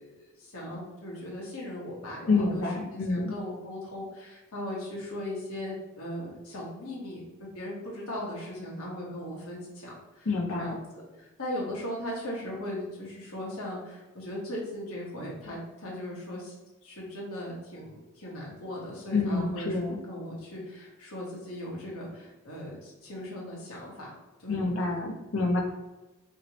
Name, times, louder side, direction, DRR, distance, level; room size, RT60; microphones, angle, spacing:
voice 1, 0.0-10.3 10.6-10.8 11.2-16.5 16.8-19.8 20.1-24.1 24.4-25.0, left 1 dB, 90° left, -4 dB, 1.2 m, -38 dB
voice 2, 2.3-3.3 10.3-10.7 19.1-20.0 24.5-25.6, left 3 dB, 65° left, 2 dB, 0.5 m, -27 dB
3.0 x 2.9 x 2.8 m, 1.1 s
head